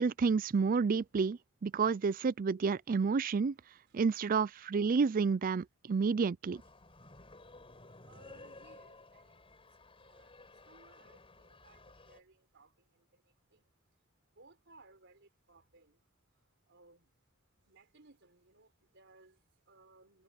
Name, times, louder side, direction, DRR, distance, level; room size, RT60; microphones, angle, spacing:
voice 1, 0.0-3.5 3.9-6.6, right 5 dB, 40° right, 0.4 m, -30 dB
sound 1, 6.5-12.2, left 2 dB, 25° left, 5.6 m, -55 dB
voice 2, 8.1-9.6 10.0-10.3 10.7-13.7 14.3-16.0 16.7-17.1 17.6-20.2, right 3 dB, 60° right, 4.3 m, -63 dB
head